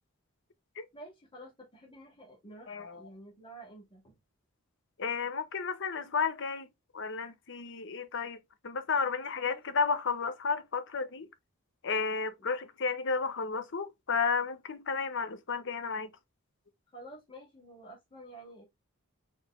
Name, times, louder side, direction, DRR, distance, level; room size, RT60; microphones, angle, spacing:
voice 1, 0.9-4.2 9.4-9.6 16.9-18.6, right 1 dB, 25° left, 2.2 m, -50 dB
voice 2, 2.7-3.0 5.0-6.7 6.9-8.4 8.6-11.3 11.8-16.1, left 5 dB, 55° left, 0.8 m, -32 dB
4.4 x 3.2 x 3.6 m
head